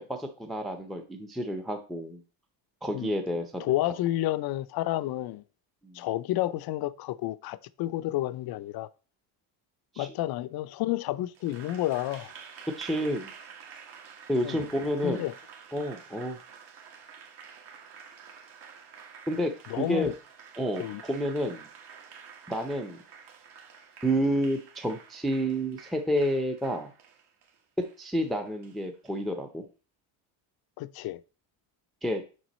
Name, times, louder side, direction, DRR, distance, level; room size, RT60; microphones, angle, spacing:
voice 1, 0.1-2.2 2.8-3.7 5.8-6.0 9.9-10.1 12.8-13.3 14.3-15.2 15.7-16.4 19.3-20.1 20.6-21.7 22.5-23.0 24.0-26.9 28.0-29.6 32.0-32.2, equal, ahead, 0.5 m, -30 dB
voice 2, 3.6-5.4 5.9-8.9 10.0-12.3 14.4-14.6 15.0-15.3 19.7-20.1 20.8-21.0 30.8-31.2, left 14 dB, 50° left, 0.5 m, -30 dB
Applause, 11.3-29.2, right 6 dB, 55° right, 1.6 m, -49 dB
6.3 x 5.7 x 4.1 m
cardioid pair, 130°, 48 cm